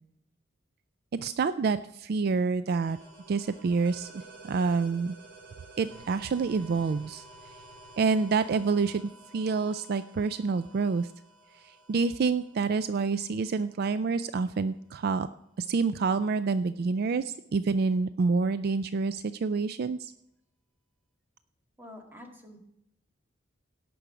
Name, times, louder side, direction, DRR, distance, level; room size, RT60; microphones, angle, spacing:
voice 1, 1.1-3.0 3.3-5.2 5.8-7.2 8.0-9.0 9.3-11.1 11.5-15.3 15.6-20.1, right 4 dB, 50° right, 13 dB, 0.3 m, -28 dB
sound 1, 2.8-14.2, right 2 dB, 75° right, 4.1 m, -51 dB
voice 2, 21.8-22.6, left 1 dB, 10° right, 1 dB, 1.9 m, -47 dB
17.0 x 6.1 x 5.0 m, 0.80 s
head